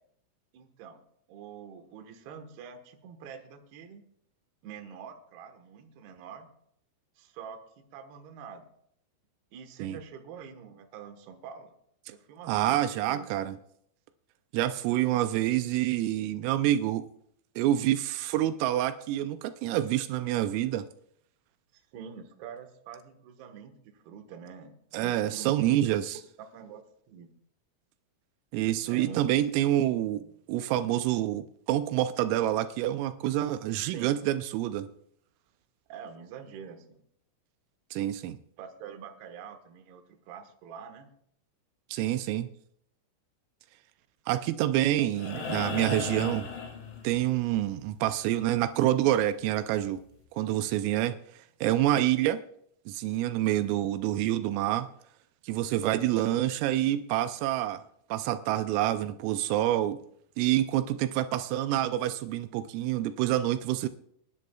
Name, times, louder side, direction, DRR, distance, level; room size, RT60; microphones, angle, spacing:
voice 1, 0.5-1.0 1.3-4.0 4.6-6.5 7.2-7.6 7.9-8.6 9.5-11.7 12.1-13.3 21.7-25.8 26.5-27.3 28.9-29.3 33.8-34.1 35.9-36.9 38.6-41.1 45.0-45.6, right 7 dB, 65° right, 5 dB, 2.9 m, -46 dB
voice 2, 12.5-13.6 14.5-17.0 17.6-20.9 24.9-26.2 28.5-34.9 37.9-38.4 41.9-42.5 44.3-46.5 47.0-50.0 50.3-51.2 51.6-52.4 52.9-54.9 55.4-57.8 58.1-60.0 60.4-63.9, right 13 dB, 85° right, 10 dB, 3.2 m, -27 dB
sound 1, 45.1-47.5 49.3-49.4, left 5 dB, 50° left, 3.3 m, -36 dB
29.0 x 11.0 x 2.3 m, 0.71 s
omnidirectional pair, 5.8 m